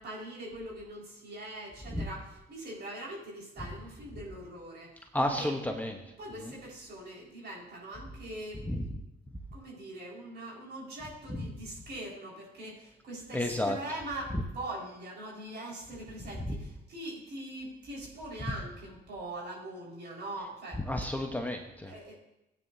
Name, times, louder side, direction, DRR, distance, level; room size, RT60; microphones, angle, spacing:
voice 1, 0.0-4.9 5.2-5.5 6.2-8.6 9.5-20.8 21.9-22.2, right 1 dB, 60° right, -3 dB, 5.0 m, -42 dB
voice 2, 5.1-5.9 8.6-8.9 13.3-13.8 14.3-14.4 16.5-16.6 20.9-21.9, left 1 dB, 10° left, 2 dB, 1.1 m, -31 dB
16.5 x 9.3 x 2.8 m, 0.87 s
cardioid pair, 90°, 20 cm